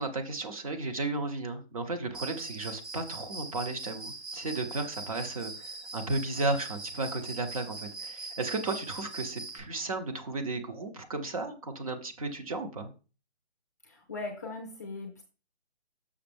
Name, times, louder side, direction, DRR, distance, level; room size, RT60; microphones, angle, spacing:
voice 1, 0.0-12.9, right 3 dB, 30° right, 6 dB, 0.9 m, -34 dB
Cricket, 2.1-9.6, right 3 dB, 80° right, 3.7 m, -41 dB
voice 2, 13.8-15.2, left 3 dB, 15° left, 0 dB, 0.6 m, -39 dB
6.5 x 6.1 x 3.5 m, 0.34 s
hypercardioid pair, 165°, 33 cm